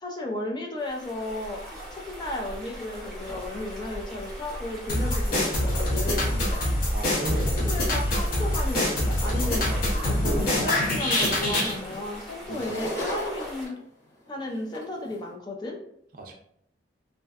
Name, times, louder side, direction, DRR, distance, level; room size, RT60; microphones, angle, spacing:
voice 1, 0.0-1.6 1.9-6.4 7.5-9.7 10.1-13.8 14.3-15.8, left 2 dB, 25° left, 0 dB, 0.3 m, -34 dB
sound 1, 0.8-13.7, equal, ahead, 0.8 m, -41 dB
sound 2, 2.1-2.4 2.8-3.6 4.3-5.1 5.4-6.6 7.1-10.1 10.4-15.2, equal, 70° left, 0.9 m, -39 dB
sound 3, 4.9-11.7, left 1 dB, 50° left, 0.7 m, -25 dB
voice 2, 6.9-7.7 12.5-12.7 16.1-16.3, right 1 dB, 50° right, 2 dB, 0.4 m, -35 dB
2.6 x 2.1 x 2.3 m, 0.71 s
head